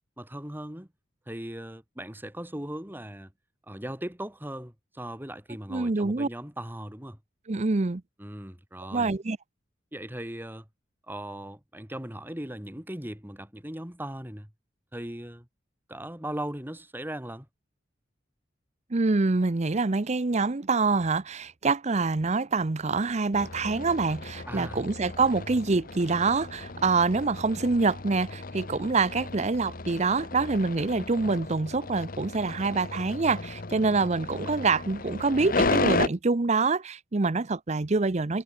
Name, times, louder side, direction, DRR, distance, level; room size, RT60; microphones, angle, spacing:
voice 1, 0.2-0.9 1.3-3.3 3.7-7.2 8.2-9.1 9.9-10.7 11.1-14.5 14.9-15.5 15.9-17.5 24.5-24.8, right 1 dB, 10° right, 3.0 m, -38 dB
voice 2, 5.7-6.3 7.5-8.0 8.9-9.4 18.9-38.4, right 3 dB, 40° right, 0.7 m, -26 dB
sound 1, 23.3-36.1, left 3 dB, 50° left, 1.3 m, -34 dB
head